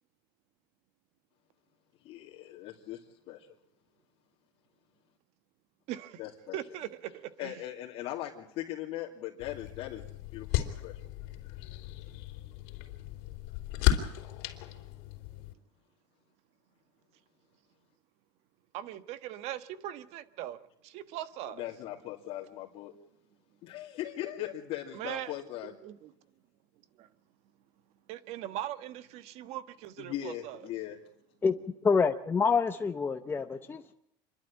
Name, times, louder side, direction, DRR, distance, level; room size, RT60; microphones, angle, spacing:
voice 1, 2.0-3.5 6.2-6.6 7.4-10.9 21.4-22.9 23.6-25.7 30.0-31.0, left 13 dB, 55° left, 2.6 m, -39 dB
voice 2, 5.9-6.2 6.5-7.1 7.4-7.5 18.7-20.6 20.8-21.6 24.9-25.3 25.8-26.1 28.1-30.6, right 12 dB, 60° right, 1.4 m, -40 dB
sound 1, 9.4-15.5, left 13 dB, 70° left, 3.5 m, -34 dB
voice 3, 31.8-33.9, left 5 dB, 15° left, 0.8 m, -27 dB
27.0 x 11.5 x 8.7 m
supercardioid pair, 130°, 12 cm